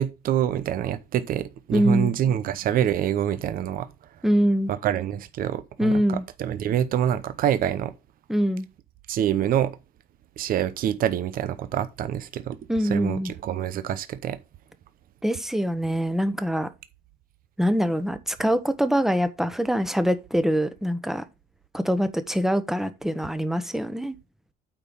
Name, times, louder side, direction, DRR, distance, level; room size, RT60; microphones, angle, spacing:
voice 1, 0.0-3.9 4.7-5.9 6.4-7.9 9.1-9.8 10.4-12.6 12.9-14.4, right 10 dB, 60° right, 0.7 m, -26 dB
voice 2, 1.7-2.1 4.2-4.7 5.8-6.2 8.3-8.7 12.7-13.3 15.2-16.7 17.6-21.2 21.7-24.1, equal, ahead, 1.0 m, -24 dB
8.7 x 4.6 x 5.4 m
cardioid pair, 110°, 17 cm